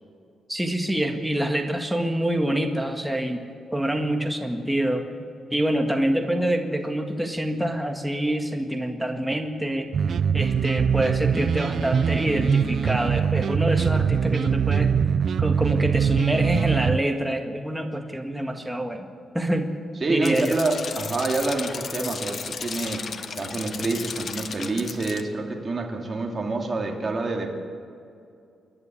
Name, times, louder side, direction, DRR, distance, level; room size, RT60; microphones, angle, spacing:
voice 1, 0.5-3.4 3.7-5.1 5.5-9.9 10.3-14.9 15.4-19.1 19.3-19.7 20.1-20.6, right 1 dB, 5° right, 3 dB, 1.8 m, -26 dB
sound 1, 9.9-17.0, right 7 dB, 55° right, 0.5 m, -22 dB
voice 2, 20.0-23.0 23.3-27.6, right 3 dB, 30° right, 1 dB, 2.6 m, -27 dB
sound 2, 20.2-25.2, left 6 dB, 50° left, 1.2 m, -35 dB
28.0 x 11.0 x 8.6 m, 2.5 s
cardioid pair, 120°, 0 cm